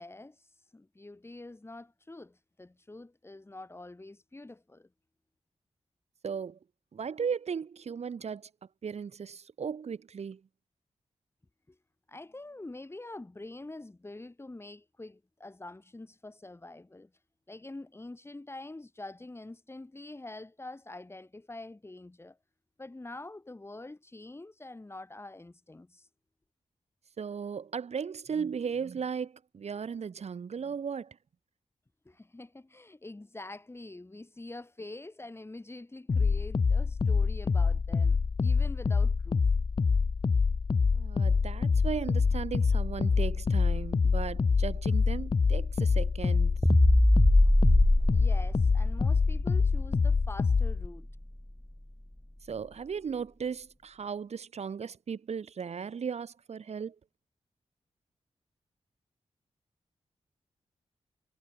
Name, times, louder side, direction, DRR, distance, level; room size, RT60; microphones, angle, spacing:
voice 1, 0.0-4.9 11.7-11.8 12.1-17.1 17.5-22.4 22.8-26.1 32.1-39.5 47.8-47.9 48.1-51.1, left 2 dB, 20° left, 6.9 m, -46 dB
voice 2, 6.2-6.6 6.9-8.5 8.8-10.4 27.2-31.2 40.9-46.6 52.5-57.0, right 6 dB, 75° right, 7.8 m, -36 dB
sound 1, 36.1-50.9, left 5 dB, 45° left, 1.1 m, -26 dB
sound 2, 46.6-51.1, left 1 dB, 5° left, 1.0 m, -24 dB
wide cardioid pair, 90°, 11 cm